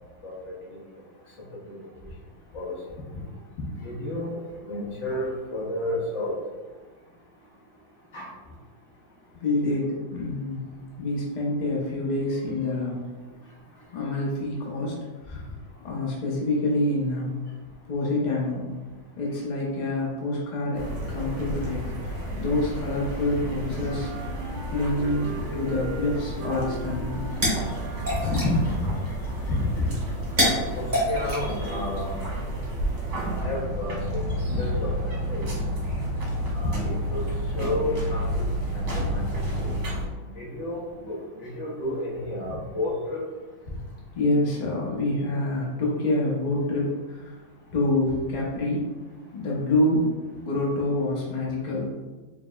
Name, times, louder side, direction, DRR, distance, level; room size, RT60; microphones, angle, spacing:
voice 1, 0.2-0.5 1.6-1.7 2.5-2.7 3.8-6.3 8.1-8.3 27.7-28.9 29.5-29.9 30.7-32.2 33.3-34.9 35.3-35.5 36.5-37.2 37.6-38.5 38.7-39.4 40.3-43.2, left 1 dB, 50° left, -5 dB, 1.0 m, -30 dB
voice 2, 9.3-10.7 11.0-13.0 13.9-14.9 15.2-15.4 15.8-17.3 17.9-18.7 19.2-20.8 21.1-24.1 24.7-27.2 39.5-39.6 44.1-47.4 47.7-48.9 49.3-50.1 50.4-51.9, left 2 dB, 75° left, -4 dB, 0.4 m, -27 dB
sound 1, 20.7-40.1, equal, 55° right, 1.3 m, -31 dB
Wind instrument woodwind instrument, 23.8-28.9, right 3 dB, 90° right, 0.7 m, -39 dB
sound 2, 26.9-32.3, equal, 20° right, 1.5 m, -29 dB
4.9 x 3.4 x 2.3 m, 1.2 s
omnidirectional pair, 2.2 m